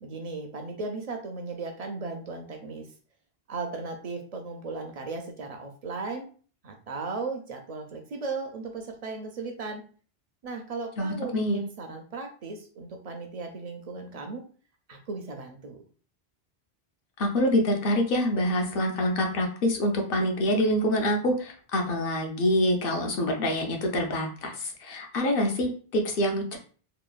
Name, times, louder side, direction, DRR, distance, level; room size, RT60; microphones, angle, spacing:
voice 1, 0.0-2.9 3.5-6.3 6.6-9.8 10.4-14.4 14.9-15.8, right 3 dB, 55° right, 4 dB, 0.4 m, -36 dB
voice 2, 11.0-11.6 17.2-26.6, equal, 65° left, 3 dB, 0.8 m, -26 dB
2.9 x 2.2 x 2.3 m, 0.41 s
omnidirectional pair, 1.1 m